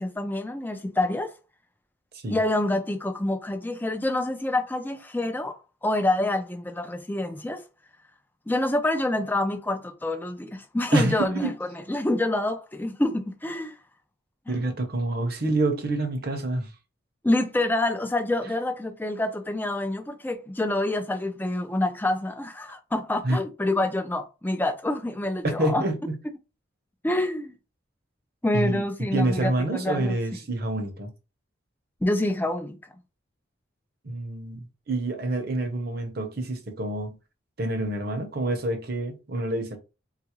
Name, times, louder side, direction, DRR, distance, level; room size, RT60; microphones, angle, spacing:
voice 1, 0.0-1.3 2.3-7.6 8.5-13.7 14.5-14.6 17.2-25.9 27.0-27.5 28.4-30.2 32.0-32.8, left 1 dB, 10° left, 0.3 m, -27 dB
voice 2, 10.9-11.5 14.5-16.7 23.2-23.4 25.6-26.2 28.5-28.8 29.1-31.1 34.0-37.2 37.6-39.8, right 2 dB, 50° right, 0.7 m, -27 dB
3.7 x 2.4 x 2.9 m
head